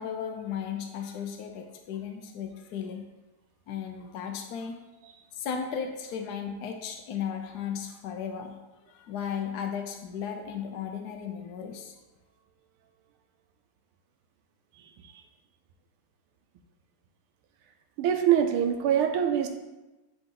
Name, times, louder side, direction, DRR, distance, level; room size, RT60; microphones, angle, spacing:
voice 1, 0.0-3.1 3.7-4.8 5.3-8.6 8.9-11.9, left 7 dB, 80° left, 4 dB, 0.8 m, -35 dB
voice 2, 18.0-19.5, right 9 dB, 80° right, 6 dB, 1.5 m, -24 dB
8.0 x 4.1 x 3.8 m, 1.1 s
omnidirectional pair, 2.4 m